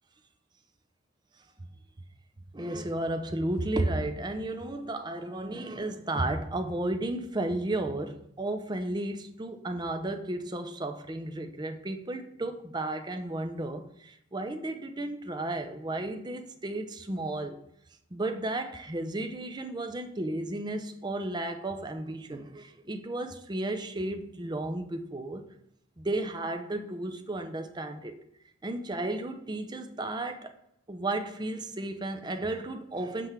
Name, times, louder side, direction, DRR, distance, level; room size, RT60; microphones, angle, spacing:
voice 1, 2.5-17.6 18.1-25.5 26.0-28.2 28.6-30.5 30.9-33.3, right 2 dB, 20° right, 0.6 m, -33 dB
7.5 x 3.3 x 5.9 m
head